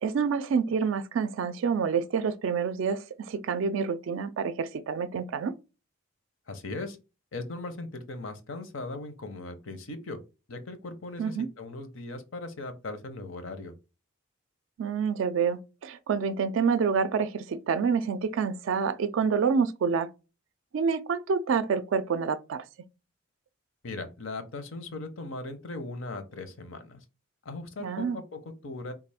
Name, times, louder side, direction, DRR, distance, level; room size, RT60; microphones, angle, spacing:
voice 1, 0.0-5.5 11.2-11.5 14.8-20.1 20.7-22.6 27.8-28.2, right 6 dB, 65° right, 0.3 m, -27 dB
voice 2, 6.5-7.0 7.3-10.2 10.5-13.7 23.8-27.0 27.4-28.9, left 2 dB, 65° left, 0.7 m, -38 dB
3.5 x 2.4 x 3.4 m
head